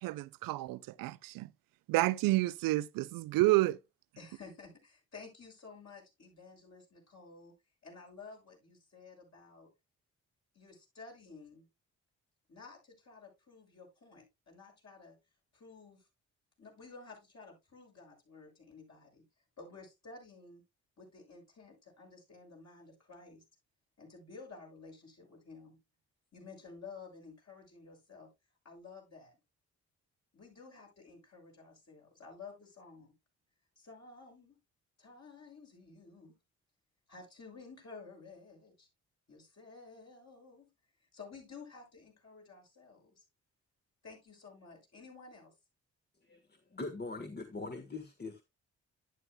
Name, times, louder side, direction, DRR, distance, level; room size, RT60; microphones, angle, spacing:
voice 1, 0.0-1.5 1.9-3.8, right 19 dB, 70° right, 0.5 m, -30 dB
voice 2, 4.2-7.5 7.8-9.7 10.5-11.6 12.5-15.2 15.5-16.1 16.6-19.2 19.6-20.6 21.0-23.4 24.0-25.8 26.3-28.3 28.6-29.4 30.3-33.1 33.8-34.6 35.0-36.3 37.1-38.9 39.3-40.7 41.1-43.2 44.0-45.5, left 4 dB, 50° left, 6.6 m, -53 dB
voice 3, 46.7-48.4, left 3 dB, 30° left, 1.5 m, -41 dB
11.0 x 10.0 x 2.2 m
hypercardioid pair, 40°, 35 cm